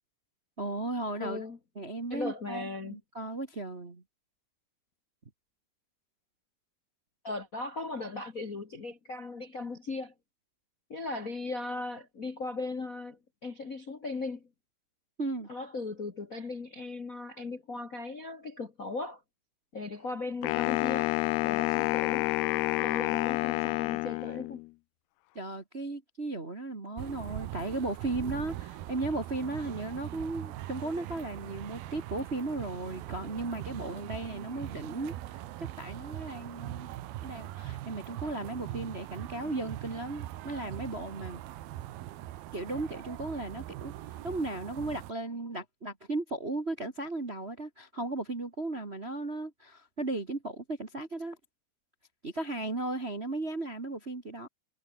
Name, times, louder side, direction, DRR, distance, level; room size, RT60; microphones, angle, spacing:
voice 1, 0.6-1.4 1.7-4.0 15.2-15.5 25.3-36.9 37.2-41.4 42.5-51.4 52.2-54.5, right 2 dB, 35° right, 1.0 m, -36 dB
voice 2, 1.2-1.6 2.1-3.0 7.2-10.1 10.9-14.4 15.5-19.2 19.7-21.1 21.4-22.3 22.8-24.6, left 3 dB, 60° left, 0.8 m, -38 dB
Wind instrument woodwind instrument, 20.4-24.7, left 24 dB, 85° left, 2.5 m, -29 dB
sound 1, 27.0-45.1, right 14 dB, 75° right, 3.0 m, -41 dB
omnidirectional pair, 4.5 m